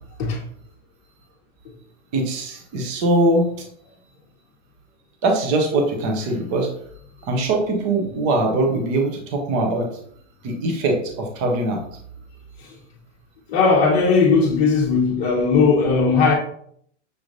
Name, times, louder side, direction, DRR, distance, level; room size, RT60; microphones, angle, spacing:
voice 1, 2.1-3.5 5.2-6.7 7.3-9.9 10.4-11.8, right 2 dB, 15° right, 0.4 m, -21 dB
voice 2, 13.5-16.3, left 4 dB, 25° left, 0.8 m, -17 dB
6.2 x 3.0 x 2.5 m
hypercardioid pair, 155°, 37 cm